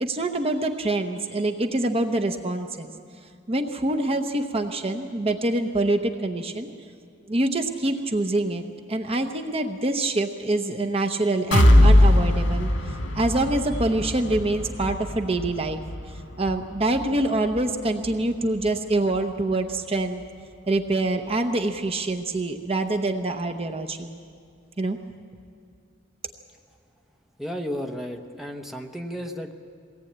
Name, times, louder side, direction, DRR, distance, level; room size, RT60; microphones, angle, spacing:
voice 1, 0.0-2.9 3.5-6.7 7.3-8.6 8.9-15.8 16.4-20.2 20.7-24.2 24.8-25.0, right 2 dB, 30° right, 5 dB, 0.9 m, -25 dB
sound 1, 11.5-19.3 19.7-19.8 20.2-20.3, left 1 dB, 90° left, 1.9 m, -22 dB
voice 2, 27.4-29.5, equal, ahead, 2 dB, 1.0 m, -33 dB
22.0 x 18.0 x 8.7 m, 2.2 s
head